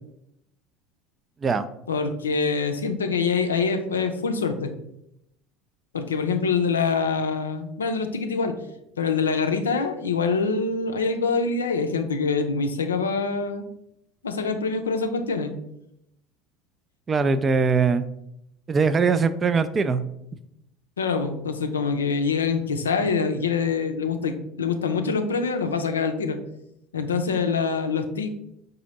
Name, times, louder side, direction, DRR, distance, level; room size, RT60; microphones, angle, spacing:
voice 1, 1.9-4.7 5.9-8.5 9.0-13.6 14.2-15.5 21.0-26.4 26.9-28.3, left 5 dB, 80° left, 7 dB, 0.4 m, -25 dB
voice 2, 17.1-18.1 18.7-20.0, right 5 dB, 30° right, 13 dB, 0.3 m, -21 dB
4.9 x 2.6 x 4.0 m, 0.79 s
figure-of-eight pair, 65°, 0 cm